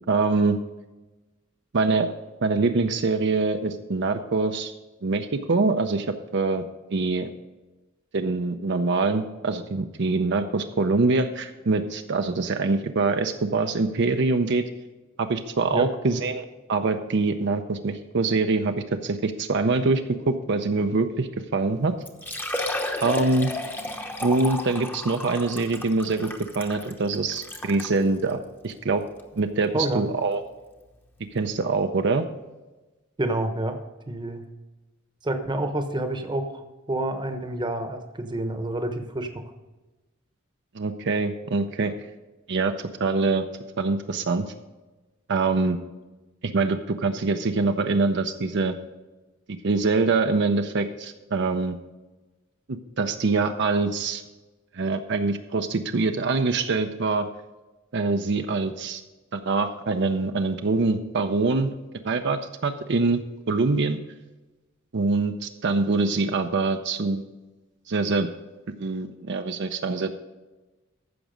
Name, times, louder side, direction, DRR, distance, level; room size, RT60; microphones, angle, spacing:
voice 1, 0.1-0.6 1.7-2.1 2.4-4.7 5.0-6.1 6.3-6.6 6.9-7.3 8.1-14.6 15.2-18.7 19.0-20.0 20.3-21.9 23.0-23.5 24.2-26.3 26.6-29.0 29.4-30.4 31.3-32.2 40.7-41.9 42.5-42.7 43.0-43.4 43.8-44.5 45.3-45.8 46.4-48.7 49.5-51.8 52.7-54.2 54.7-57.3 57.9-59.0 59.3-61.7 62.0-64.0 64.9-67.2 67.9-68.3 68.8-70.2, right 3 dB, 60° right, 6 dB, 0.6 m, -24 dB
Liquid, 21.6-21.7 22.1-27.9 28.6-28.7 29.2-29.3 30.9-31.0 31.2-31.3, left 1 dB, 10° left, 0.9 m, -32 dB
voice 2, 33.2-33.8 34.1-34.4 35.2-36.6 36.9-39.5, right 1 dB, 20° right, 7 dB, 1.0 m, -28 dB
14.5 x 6.0 x 5.1 m, 1.1 s
head